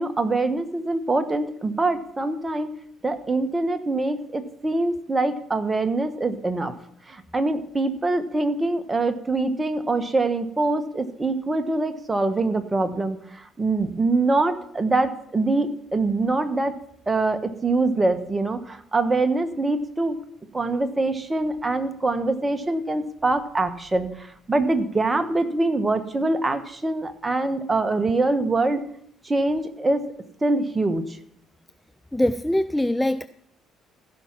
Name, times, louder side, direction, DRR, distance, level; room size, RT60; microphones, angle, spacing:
voice 1, 0.0-2.7 3.0-6.7 7.1-16.7 17.1-20.2 20.5-28.8 29.2-30.0 30.4-31.0, right 2 dB, 20° right, 10 dB, 1.3 m, -24 dB
voice 2, 32.1-33.3, left 1 dB, 5° left, 13 dB, 0.4 m, -22 dB
15.5 x 5.8 x 6.0 m, 0.69 s
hypercardioid pair, 50°, 0 cm